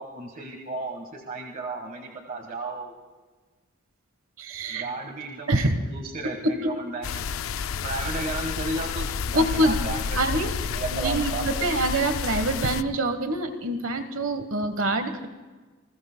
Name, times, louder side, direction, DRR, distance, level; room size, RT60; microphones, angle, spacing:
voice 1, 0.0-2.9 4.7-5.6 5.9-7.4 7.8-10.4 10.7-11.7, right 3 dB, 40° right, 2 dB, 1.5 m, -34 dB
voice 2, 4.4-4.9 5.5-5.7 6.4-6.7 9.3-9.8 10.1-10.5 10.9-15.3, right 1 dB, 75° right, 9 dB, 1.2 m, -25 dB
sound 1, 7.0-12.8, left 6 dB, 75° left, 0.5 m, -30 dB
29.0 x 20.5 x 2.2 m, 1.3 s
head